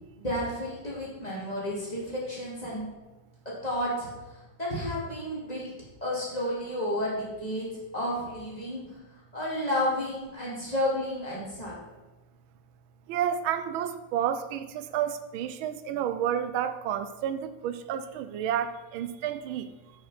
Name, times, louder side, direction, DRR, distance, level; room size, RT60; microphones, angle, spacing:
voice 1, 0.1-2.8 3.6-5.7 6.0-7.7 7.9-8.8 9.3-12.0, left 1 dB, 20° left, -6 dB, 2.8 m, -31 dB
voice 2, 13.1-19.7, right 9 dB, 90° right, 12 dB, 1.4 m, -30 dB
8.8 x 6.5 x 5.1 m, 1.1 s
omnidirectional pair, 2.2 m